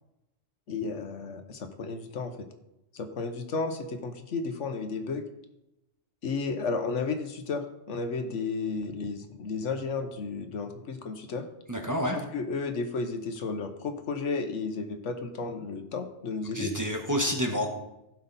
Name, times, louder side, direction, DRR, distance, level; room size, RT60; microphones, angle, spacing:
voice 1, 0.7-2.3 2.9-5.2 6.2-11.4 12.1-16.7, left 4 dB, 75° left, 7 dB, 1.2 m, -33 dB
voice 2, 11.7-12.2 16.5-17.7, equal, 15° right, 1 dB, 1.1 m, -28 dB
16.0 x 5.4 x 4.1 m, 0.89 s
omnidirectional pair, 1.3 m